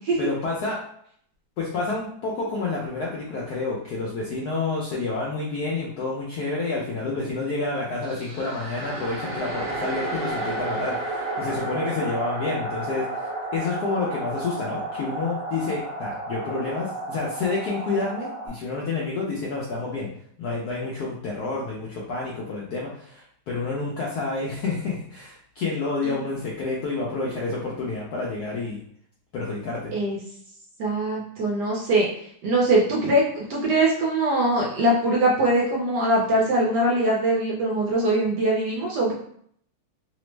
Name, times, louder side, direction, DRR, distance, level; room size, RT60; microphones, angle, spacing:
voice 1, 0.2-0.8 1.6-20.1 20.4-28.8 29.3-29.9, left 3 dB, 75° left, -4 dB, 0.9 m, -29 dB
sound 1, 8.0-18.5, right 2 dB, 50° right, 1.2 m, -32 dB
voice 2, 30.8-32.1 32.4-39.1, right 1 dB, 70° right, -3 dB, 1.1 m, -22 dB
3.3 x 2.0 x 3.1 m, 0.65 s
omnidirectional pair, 2.2 m